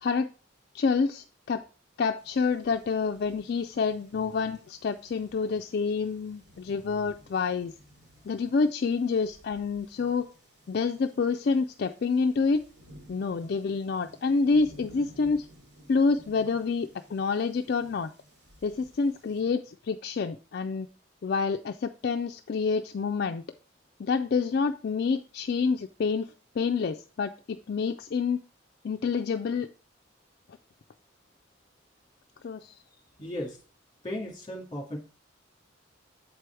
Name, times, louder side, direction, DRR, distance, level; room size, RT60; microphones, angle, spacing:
voice 1, 0.0-0.3 0.7-1.6 2.0-7.7 8.2-10.3 10.7-12.6 13.1-15.5 15.9-18.1 18.6-20.9 21.2-23.4 24.0-28.4 28.8-29.7 32.4-32.8, left 4 dB, 50° left, 6 dB, 0.3 m, -28 dB
sound 1, 2.2-19.4, equal, 55° right, 2.8 m, -56 dB
voice 2, 33.2-33.6 34.0-35.0, left 1 dB, 20° left, -1 dB, 2.2 m, -35 dB
7.5 x 4.8 x 4.5 m, 0.36 s
head